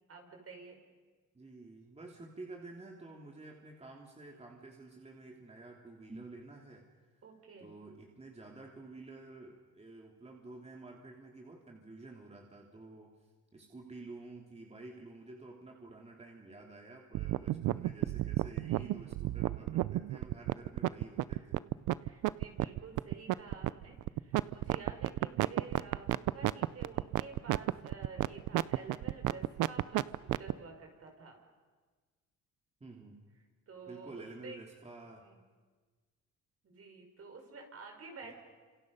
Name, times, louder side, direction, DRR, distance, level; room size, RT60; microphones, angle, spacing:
voice 1, 0.1-0.8 7.2-7.7 18.7-19.0 21.3-21.5 22.0-31.4 33.7-34.6 35.2-35.4 36.6-38.3, right 4 dB, 50° right, 2 dB, 5.7 m, -50 dB
voice 2, 1.3-6.8 7.1-7.2 7.6-13.1 13.5-21.6 32.8-33.2 33.9-35.3 38.2-38.3, right 2 dB, 20° right, 0 dB, 3.2 m, -50 dB
sound 1, 17.1-30.5, right 16 dB, 85° right, 0.6 m, -31 dB
29.5 x 27.0 x 5.6 m, 1.4 s
cardioid pair, 90°, 30 cm